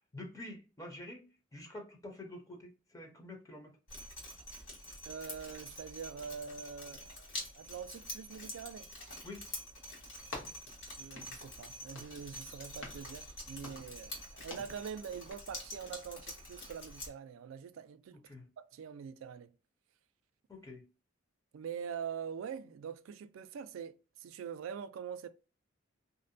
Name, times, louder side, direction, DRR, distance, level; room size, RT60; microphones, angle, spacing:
voice 1, 0.1-1.2 1.5-3.8 9.2-9.5 18.1-18.5 20.5-20.8, left 1 dB, 15° left, 0.6 m, -47 dB
Drip, 3.9-17.1, left 1 dB, 60° left, 1.4 m, -47 dB
voice 2, 5.0-8.9 11.0-18.2 18.6-19.5 21.5-25.3, right 7 dB, 80° right, 0.3 m, -44 dB
sound 1, 10.0-15.3, left 2 dB, 85° left, 1.0 m, -51 dB
2.6 x 2.1 x 2.5 m
head